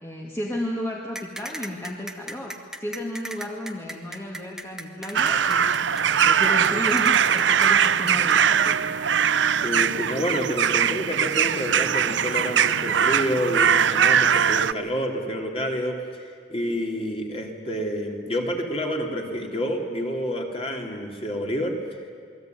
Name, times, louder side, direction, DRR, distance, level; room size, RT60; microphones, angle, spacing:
voice 1, 0.0-5.8 6.2-8.8, left 1 dB, 15° left, -1 dB, 2.2 m, -33 dB
sound 1, 1.1-8.4, right 1 dB, 5° right, 1.3 m, -36 dB
sound 2, 5.1-14.7, right 8 dB, 70° right, 0.7 m, -21 dB
voice 2, 9.6-22.1, equal, 30° left, 1 dB, 3.5 m, -29 dB
28.5 x 21.0 x 9.5 m, 2.2 s
head